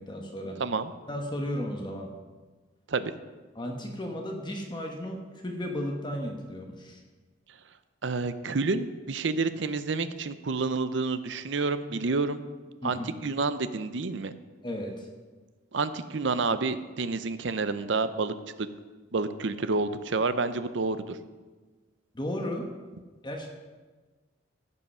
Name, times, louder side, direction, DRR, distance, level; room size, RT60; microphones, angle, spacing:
voice 1, 0.0-0.6 1.1-2.1 3.5-7.0 12.8-13.1 14.6-15.1 22.1-22.7 23.2-23.5, equal, 25° left, 2 dB, 1.1 m, -34 dB
voice 2, 0.6-0.9 2.9-3.1 8.0-12.4 12.8-14.3 15.7-18.7 19.1-21.2, right 3 dB, 70° right, 12 dB, 0.6 m, -29 dB
15.5 x 5.6 x 5.6 m, 1.3 s
head